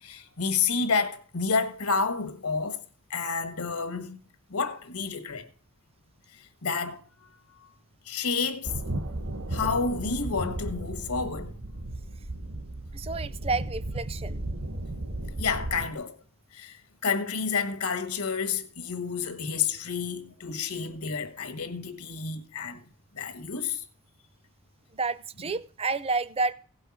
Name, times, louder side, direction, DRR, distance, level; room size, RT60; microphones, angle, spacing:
voice 1, 0.0-2.8 3.1-4.2 4.5-5.5 6.3-7.0 8.0-8.7 9.5-11.8 15.4-16.2 16.5-22.8 23.1-23.8, left 5 dB, 85° left, 1.4 m, -30 dB
sound 1, 8.6-15.9, right 1 dB, 65° right, 1.1 m, -35 dB
voice 2, 12.9-14.4 24.9-26.5, right 3 dB, 25° right, 0.5 m, -30 dB
16.5 x 5.6 x 5.9 m
head